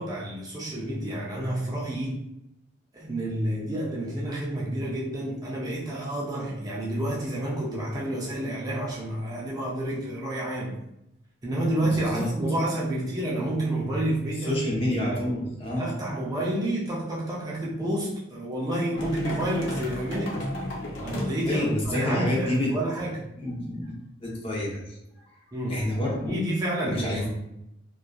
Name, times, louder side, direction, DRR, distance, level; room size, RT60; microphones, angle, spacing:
voice 1, 0.0-2.2 2.9-10.8 11.4-14.6 14.9-15.2 15.8-20.4 21.0-23.2 25.5-25.9 26.3-27.3, right 1 dB, 20° right, -4 dB, 0.4 m, -29 dB
voice 2, 11.8-12.3 14.4-15.9 21.5-22.7 23.4-23.9 24.2-25.0 25.7-26.4 26.8-27.3, left 1 dB, 30° left, -4 dB, 0.7 m, -28 dB
sound 1, 19.0-22.3, left 1 dB, 75° left, 0.5 m, -35 dB
2.7 x 2.3 x 2.2 m, 0.84 s
head